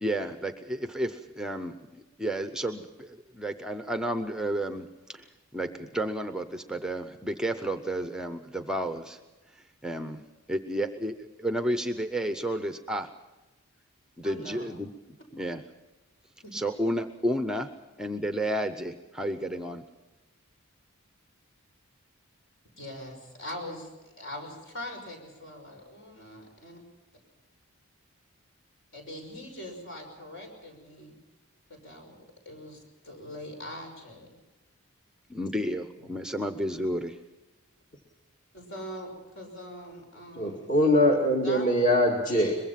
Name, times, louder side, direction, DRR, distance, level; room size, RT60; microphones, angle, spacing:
voice 1, 0.0-9.2 9.8-10.2 10.5-13.1 14.2-14.9 15.3-15.6 16.5-17.7 18.0-19.8 35.3-37.2, right 1 dB, 5° right, 8 dB, 0.6 m, -31 dB
voice 2, 14.2-14.7 16.4-16.5 16.8-16.9 22.8-23.9 24.2-26.8 28.9-31.1 31.7-34.3 38.5-40.7 41.4-41.6, left 1 dB, 60° left, 3 dB, 5.9 m, -42 dB
voice 3, 40.4-42.6, left 1 dB, 35° left, 0 dB, 2.3 m, -22 dB
22.5 x 22.0 x 5.8 m, 1.1 s
head